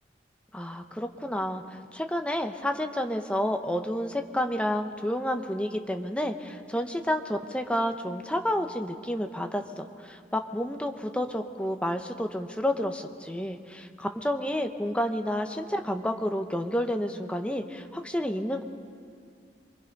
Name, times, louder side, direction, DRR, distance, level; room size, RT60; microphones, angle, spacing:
voice 1, 0.5-18.6, equal, 5° left, 5 dB, 1.0 m, -30 dB
27.0 x 24.0 x 5.4 m, 2.3 s
head